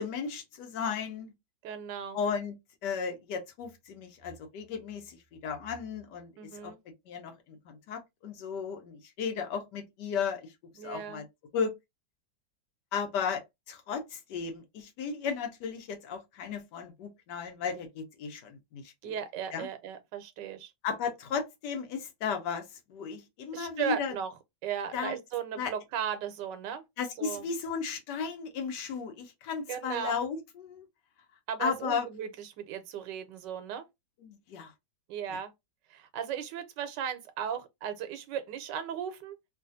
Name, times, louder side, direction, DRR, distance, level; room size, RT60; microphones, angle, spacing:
voice 1, 0.0-1.3 2.1-2.5 2.8-6.3 6.6-6.7 7.1-10.5 10.8-11.2 11.5-11.7 12.9-13.4 13.7-18.9 19.5-19.7 20.8-22.6 22.9-24.1 24.9-25.2 25.6-25.7 27.0-30.8 31.6-32.1 34.2-34.7 35.3-35.4, left 6 dB, 80° left, 1.3 m, -35 dB
voice 2, 1.6-2.2 6.4-6.8 10.8-11.2 19.0-20.7 23.5-24.3 24.6-26.8 27.2-27.5 29.7-30.2 31.5-33.9 35.1-35.5 35.9-39.4, right 8 dB, 85° right, 1.3 m, -36 dB
3.2 x 2.4 x 2.6 m
omnidirectional pair, 1.9 m